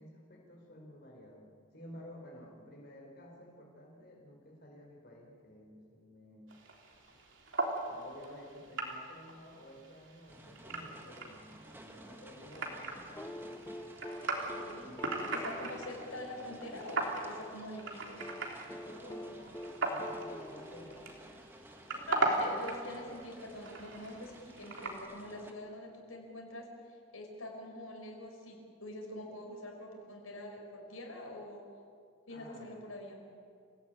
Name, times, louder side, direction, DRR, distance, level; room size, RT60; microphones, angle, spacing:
voice 1, 0.0-6.6 7.9-13.4 14.7-15.7 18.8-21.3 32.3-32.8, left 1 dB, 50° left, -1 dB, 4.2 m, -53 dB
sound 1, 6.5-25.0, right 2 dB, 65° right, 3.5 m, -39 dB
sound 2, 10.3-25.5, right 1 dB, 10° right, 1.6 m, -55 dB
sound 3, 13.2-17.3 18.2-21.8 23.2-23.3, left 1 dB, 10° left, 0.8 m, -46 dB
voice 2, 14.6-14.9 15.3-18.3 21.9-31.7 32.3-33.3, left 1 dB, 90° left, 1 dB, 5.5 m, -45 dB
27.0 x 17.5 x 9.1 m, 2.3 s
head